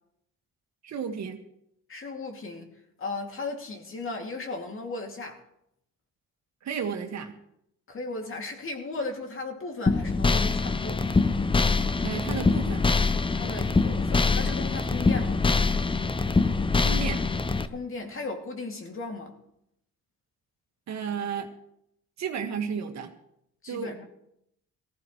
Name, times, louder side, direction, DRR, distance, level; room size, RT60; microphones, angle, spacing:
voice 1, 0.8-1.4 6.6-7.3 12.0-12.9 16.8-17.2 20.9-21.5 22.2-23.1 23.7-23.9, right 6 dB, 65° right, 1.9 m, -32 dB
voice 2, 1.9-2.7 3.0-5.4 7.9-11.0 13.3-15.4 17.7-19.3 23.6-24.0, left 3 dB, 45° left, 2.7 m, -36 dB
sound 1, 9.9-17.7, left 4 dB, 15° left, 0.7 m, -24 dB
18.5 x 15.0 x 3.2 m
cardioid pair, 90°, 30 cm